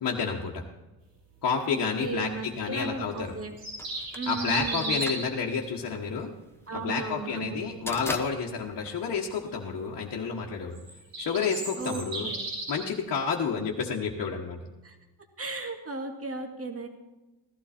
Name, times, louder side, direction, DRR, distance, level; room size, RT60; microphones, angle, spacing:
voice 1, 0.0-0.6 1.4-3.3 4.3-6.3 6.7-10.8 11.2-12.3 12.7-14.6, left 5 dB, 50° left, -3 dB, 1.4 m, -30 dB
voice 2, 1.7-3.6 4.2-5.1 6.7-7.7 11.8-12.4 14.8-15.0 15.4-16.9, right 3 dB, 30° right, 4 dB, 2.0 m, -35 dB
sound 1, 3.4-5.4 10.7-12.8, right 2 dB, 80° right, 5.4 m, -34 dB
sound 2, 3.8-9.9, left 2 dB, 5° left, 0.9 m, -40 dB
15.5 x 12.0 x 4.3 m, 1.1 s
cardioid pair, 95°, 43 cm